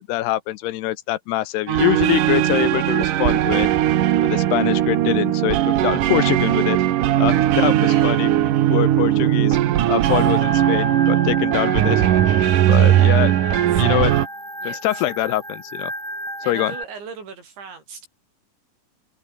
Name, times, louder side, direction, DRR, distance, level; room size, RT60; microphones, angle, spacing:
voice 1, 0.0-3.7 4.2-6.8 7.2-8.3 8.7-9.6 9.9-12.0 12.7-13.3 13.7-14.1 14.6-15.9 16.5-16.7, left 15 dB, 75° left, 2.7 m, -24 dB
sound 1, 1.7-14.3, right 12 dB, 65° right, 2.2 m, -18 dB
voice 2, 10.0-10.4 12.6-13.2 13.7-14.2 14.6-15.0 16.4-18.1, right 5 dB, 85° right, 8.5 m, -38 dB
Organ, 10.4-16.8, equal, 5° right, 7.3 m, -32 dB
omnidirectional pair, 5.1 m